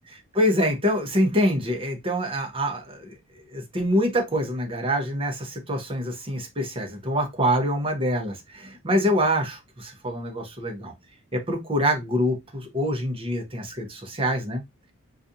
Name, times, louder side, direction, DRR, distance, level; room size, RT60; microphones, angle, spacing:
voice 1, 0.1-3.1 3.5-10.9 11.3-14.6, equal, 25° right, 0.8 m, -25 dB
3.9 x 2.5 x 2.7 m
head